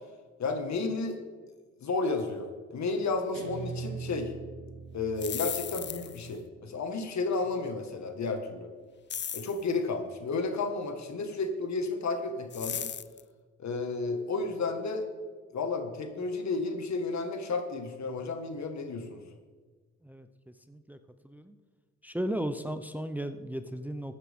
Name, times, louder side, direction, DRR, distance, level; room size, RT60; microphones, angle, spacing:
voice 1, 0.4-1.2 1.8-4.3 4.9-8.7 9.3-12.9 13.6-15.1 15.5-19.2, left 3 dB, 60° left, 5 dB, 1.8 m, -32 dB
Guitar, 3.3-6.5, right 6 dB, 80° right, 1.1 m, -42 dB
sound 1, 5.0-6.3 9.1-9.6 12.5-13.2, left 8 dB, 35° left, 0.5 m, -36 dB
voice 2, 20.0-21.0 21.2-21.6 22.0-24.1, right 1 dB, 5° right, 9 dB, 0.7 m, -36 dB
14.5 x 9.4 x 3.7 m, 1.4 s
cardioid pair, 65°, 31 cm